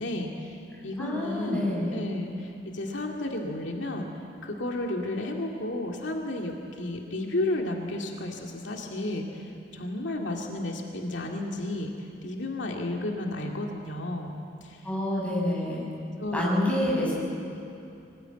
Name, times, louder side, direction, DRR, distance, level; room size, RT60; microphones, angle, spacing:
voice 1, 0.0-4.0 4.4-11.9 12.2-14.9 15.3-15.4 16.2-16.5 16.8-16.9, left 1 dB, 75° left, 1 dB, 2.3 m, -32 dB
voice 2, 1.0-2.0 14.8-15.9 16.3-17.2, left 1 dB, 5° left, -4 dB, 7.2 m, -28 dB
24.0 x 19.5 x 9.2 m, 2.7 s
head